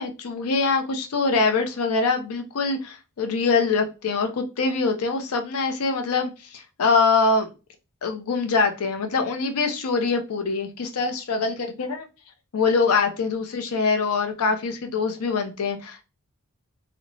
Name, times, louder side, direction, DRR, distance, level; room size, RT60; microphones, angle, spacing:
voice 1, 0.0-7.5 8.0-12.1 12.5-16.0, left 4 dB, 75° left, 0.5 m, -24 dB
2.8 x 2.1 x 2.6 m
head